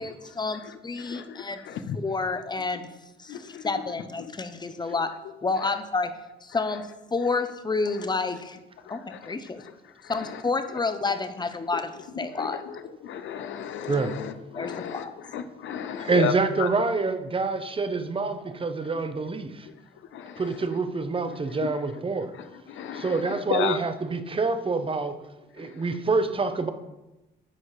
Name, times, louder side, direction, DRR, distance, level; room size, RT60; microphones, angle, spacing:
voice 1, 0.0-1.6 2.0-2.9 3.2-5.1 5.4-6.1 6.4-8.6 8.9-9.6 10.0-11.9 12.2-12.6 14.5-15.1, left 3 dB, 20° left, 10 dB, 0.7 m, -29 dB
voice 2, 0.6-2.0 3.3-3.9 5.4-5.7 7.9-8.0 8.8-10.4 10.7-10.8 12.1-16.7 19.6-20.7 21.3-21.7 22.0-22.1 22.3-23.8 25.6-26.0, left 8 dB, 75° left, 11 dB, 0.7 m, -35 dB
voice 3, 16.0-19.7 20.4-22.3 22.9-25.2 25.5-26.7, right 3 dB, 25° right, 9 dB, 0.8 m, -26 dB
9.8 x 4.2 x 4.9 m, 1.0 s
cardioid pair, 90°, 20 cm